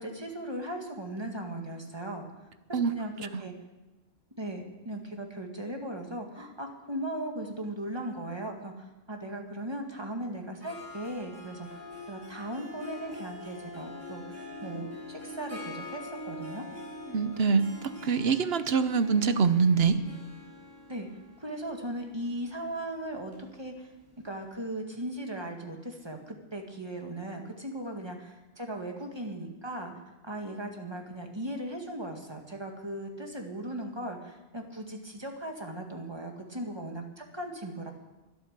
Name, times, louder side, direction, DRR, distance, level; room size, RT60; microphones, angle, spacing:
voice 1, 0.0-2.3 2.7-3.5 4.4-11.8 12.1-14.3 14.6-16.7 20.9-21.1 21.4-23.9 24.2-29.9 30.2-37.9, right 1 dB, 25° right, 2 dB, 2.1 m, -38 dB
Harp, 10.6-24.2, left 2 dB, 50° right, 4.7 m, -44 dB
voice 2, 17.1-20.0, right 5 dB, 75° right, 11 dB, 1.1 m, -24 dB
23.5 x 8.6 x 6.7 m, 1.1 s
omnidirectional pair, 1.0 m